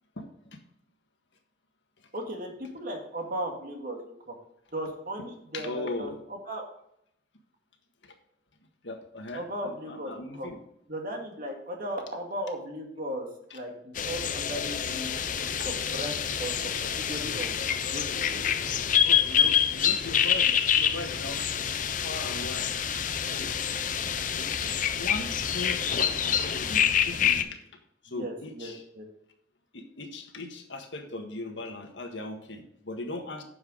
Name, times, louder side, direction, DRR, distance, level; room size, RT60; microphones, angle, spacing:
voice 1, 0.2-0.6 5.5-6.2 8.0-8.2 8.8-10.5 13.5-13.6 15.6-15.7 19.0-21.4 21.8-22.7 23.2-23.5 24.4-27.6 28.0-28.8 29.7-33.4, left 2 dB, 85° left, 4 dB, 1.6 m, -39 dB
voice 2, 2.1-4.3 4.7-6.7 9.3-10.5 10.9-13.3 13.5-15.1 15.4-17.6 17.9-18.4 24.2-24.5 28.1-29.1, right 1 dB, 50° right, 2 dB, 2.1 m, -37 dB
sound 1, 13.9-27.4, left 8 dB, 45° left, 0.6 m, -27 dB
9.9 x 7.0 x 3.9 m, 0.75 s
head